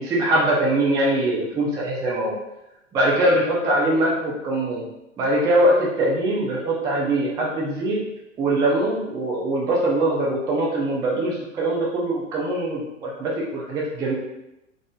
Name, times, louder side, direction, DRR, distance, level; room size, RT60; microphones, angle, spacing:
voice 1, 0.0-2.4 2.9-4.8 5.2-8.0 8.4-14.1, right 1 dB, 10° right, -4 dB, 0.3 m, -22 dB
3.7 x 2.4 x 2.2 m, 0.91 s
figure-of-eight pair, 95°, 39 cm